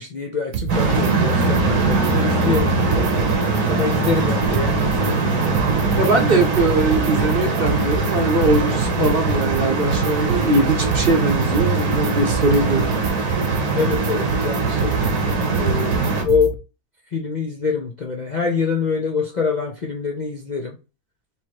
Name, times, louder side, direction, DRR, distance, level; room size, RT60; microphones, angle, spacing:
voice 1, 0.0-3.2 3.7-5.5 9.0-9.3 13.7-15.0 15.6-16.6 17.1-20.8, left 5 dB, 45° left, 0.6 m, -25 dB
sound 1, 0.5-1.1 1.4-2.1 2.4-5.1 5.4-16.5, right 6 dB, 65° right, 1.0 m, -27 dB
sound 2, 0.7-16.2, right 3 dB, 85° right, 1.6 m, -21 dB
voice 2, 6.0-12.9, right 2 dB, 45° right, 0.9 m, -21 dB
3.4 x 3.1 x 4.6 m
omnidirectional pair, 1.6 m